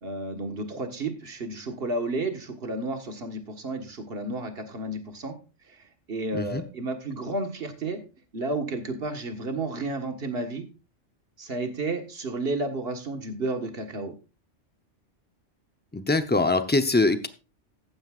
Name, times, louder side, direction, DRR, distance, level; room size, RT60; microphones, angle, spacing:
voice 1, 0.0-5.3 5.7-8.0 8.3-10.6 11.4-14.1, right 2 dB, 55° right, 5 dB, 1.7 m, -32 dB
voice 2, 15.9-17.3, left 2 dB, 10° left, 8 dB, 0.5 m, -23 dB
14.0 x 9.7 x 2.5 m, 0.31 s
omnidirectional pair, 1.2 m